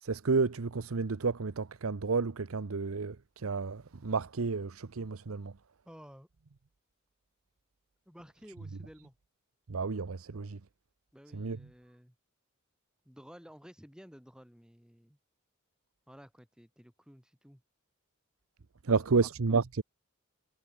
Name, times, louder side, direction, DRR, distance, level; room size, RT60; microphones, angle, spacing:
voice 1, 0.0-5.5 9.7-10.6 11.3-11.6 18.8-19.8, right 4 dB, 85° right, 0.7 m, -31 dB
voice 2, 5.8-6.3 8.0-9.1 11.1-12.1 13.0-15.2 16.1-17.6 18.9-19.6, equal, 5° right, 6.8 m, -54 dB
head